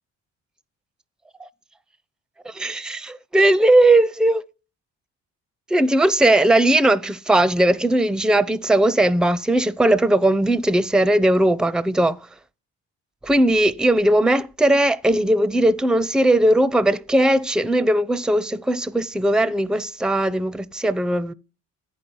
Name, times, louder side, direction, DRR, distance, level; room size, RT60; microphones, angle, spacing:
voice 1, 2.4-4.4 5.7-12.2 13.2-21.3, right 1 dB, 5° right, 0.4 m, -18 dB
8.6 x 5.4 x 7.0 m
cardioid pair, 90°, 30 cm